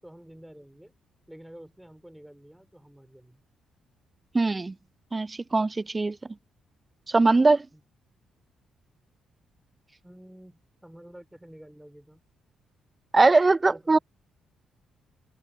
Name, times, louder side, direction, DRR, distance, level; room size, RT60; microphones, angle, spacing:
voice 1, 0.0-0.9 1.3-3.4 7.7-7.8 10.0-12.2 13.7-14.0, equal, 5° right, 5.3 m, -49 dB
voice 2, 4.3-4.7 5.1-6.2 7.1-7.7 13.1-14.0, right 3 dB, 25° right, 0.3 m, -21 dB
figure-of-eight pair, 40°, 0 cm